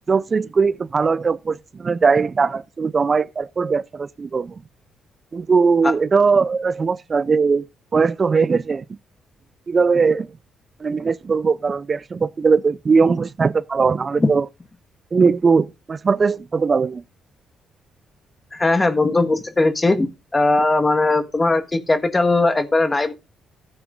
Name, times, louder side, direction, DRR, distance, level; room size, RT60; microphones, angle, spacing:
voice 1, 0.1-4.5 5.3-7.6 7.9-8.8 9.7-10.3 10.8-14.5 15.1-17.0, right 5 dB, 40° right, 0.4 m, -19 dB
voice 2, 18.5-20.1 20.3-23.1, left 2 dB, 25° left, 1.4 m, -19 dB
14.5 x 8.6 x 2.5 m
supercardioid pair, 55°, 0 cm